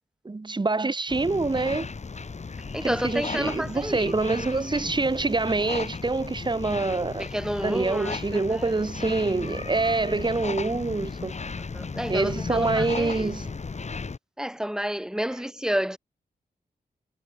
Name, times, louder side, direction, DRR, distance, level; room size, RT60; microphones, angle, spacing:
voice 1, 0.3-1.9 2.8-7.3 7.6-11.3 12.1-13.5, right 3 dB, 30° right, 1.9 m, -26 dB
sound 1, 1.1-14.2, left 4 dB, 45° left, 4.3 m, -35 dB
voice 2, 2.7-4.1 7.2-8.7 11.7-13.3 14.4-16.0, equal, 5° right, 2.0 m, -30 dB
cardioid pair, 80°, 16 cm